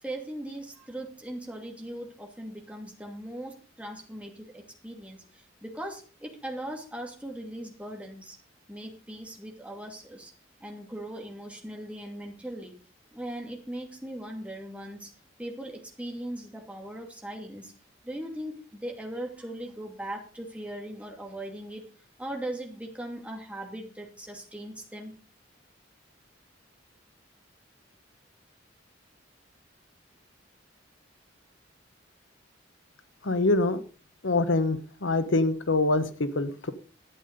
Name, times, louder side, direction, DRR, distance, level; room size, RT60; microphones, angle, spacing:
voice 1, 0.0-8.4 8.7-10.3 10.6-12.7 13.1-15.1 15.4-17.7 18.0-21.8 22.2-25.1, right 1 dB, 5° right, 1 dB, 2.6 m, -39 dB
voice 2, 33.2-33.8 34.2-36.7, left 2 dB, 85° left, 12 dB, 1.1 m, -25 dB
11.5 x 8.7 x 5.3 m, 0.38 s
head